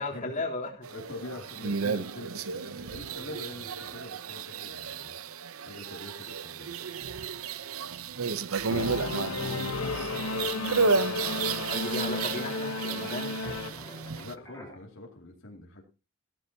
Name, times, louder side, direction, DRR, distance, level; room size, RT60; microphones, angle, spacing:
voice 1, 0.0-0.7 8.9-10.8 11.2-13.4, left 2 dB, 35° left, -1 dB, 3.4 m, -38 dB
sound 1, 0.8-14.3, right 5 dB, 75° right, 0.8 m, -33 dB
voice 2, 0.9-5.2 5.6-6.7 14.2-15.8, left 2 dB, 60° left, 0 dB, 2.6 m, -44 dB
Singing / Musical instrument, 8.7-13.7, left 3 dB, 85° left, 1.1 m, -33 dB
sound 2, 9.8-14.8, left 1 dB, 15° left, 3.2 m, -48 dB
15.5 x 13.5 x 2.8 m, 0.30 s
head